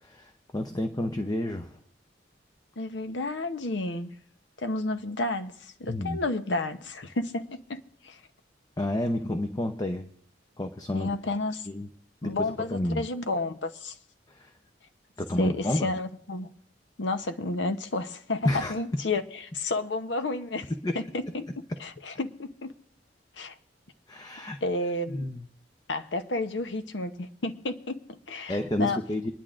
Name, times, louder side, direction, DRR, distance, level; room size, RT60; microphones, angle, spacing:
voice 1, 0.0-1.8 5.9-6.2 8.8-10.1 10.6-11.2 11.7-11.9 12.2-13.0 14.3-14.5 15.2-15.9 18.4-18.7 20.8-20.9 24.1-24.6 25.1-25.5 28.5-29.3, left 1 dB, 20° left, 0.6 m, -30 dB
voice 2, 2.8-4.1 4.6-8.2 10.9-11.7 12.2-13.9 15.4-16.5 17.0-21.5 21.8-22.7 23.4-23.5 24.6-25.3 25.9-29.0, left 2 dB, 80° left, 0.8 m, -31 dB
26.5 x 10.5 x 2.5 m
head